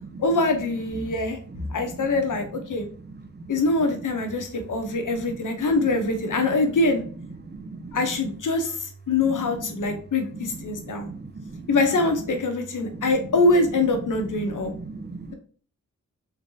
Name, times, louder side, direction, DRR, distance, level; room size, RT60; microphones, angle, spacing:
voice 1, 0.2-1.4 1.7-2.9 3.5-7.0 7.9-11.1 11.7-14.7, left 2 dB, 70° left, 5 dB, 0.9 m, -24 dB
voice 2, 3.1-3.5 5.3-5.4 6.5-6.6 7.5-8.0 9.2-9.8 10.4-11.7 14.5-15.3, right 3 dB, 35° right, 8 dB, 0.5 m, -39 dB
3.7 x 3.3 x 2.8 m, 0.43 s
cardioid pair, 70°, 32 cm